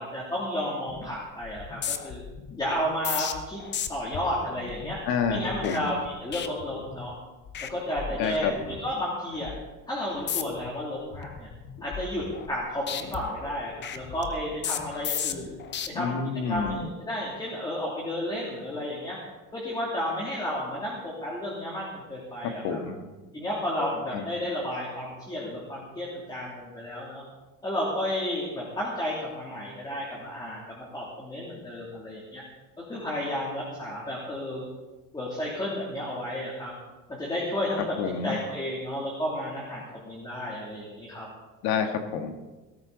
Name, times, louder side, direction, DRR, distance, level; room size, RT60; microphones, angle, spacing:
voice 1, 0.0-2.2 2.6-3.6 3.9-5.0 5.3-7.1 7.6-9.5 9.9-11.5 11.8-15.5 15.9-16.2 16.5-19.2 19.5-22.8 23.3-27.2 27.6-32.4 32.9-34.7 35.1-36.7 37.1-38.0 38.2-41.3, left 1 dB, 10° left, -5 dB, 2.8 m, -32 dB
sound 1, 0.9-1.2 1.4-7.2 7.5-7.7 8.0-8.9 9.3-9.6 10.1-10.7 11.1-12.6 12.9-15.9 16.4-16.7, left 8 dB, 30° left, 0.8 m, -36 dB
voice 2, 5.1-5.9 8.2-8.5 15.9-16.9 22.6-23.0 24.1-24.3 38.0-38.4 41.6-42.4, left 6 dB, 90° left, 5 dB, 1.9 m, -29 dB
18.0 x 13.0 x 4.0 m, 1.2 s
cardioid pair, 165°, 36 cm